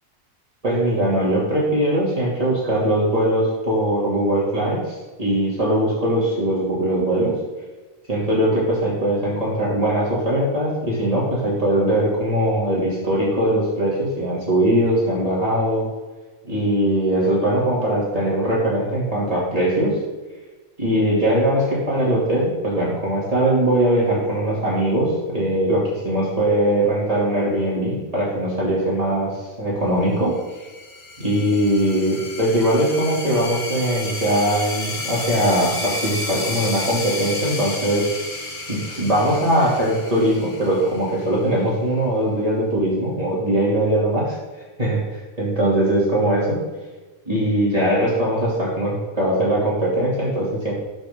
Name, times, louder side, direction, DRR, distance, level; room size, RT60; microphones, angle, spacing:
voice 1, 0.6-7.4 8.1-15.9 16.4-20.0 20.8-30.4 31.2-38.1 38.7-44.4 44.8-46.6 47.3-50.7, right 1 dB, 35° right, -7 dB, 2.9 m, -21 dB
sound 1, 30.4-41.6, left 2 dB, 50° left, 1.5 m, -32 dB
18.5 x 6.2 x 3.8 m, 1.3 s
omnidirectional pair, 1.1 m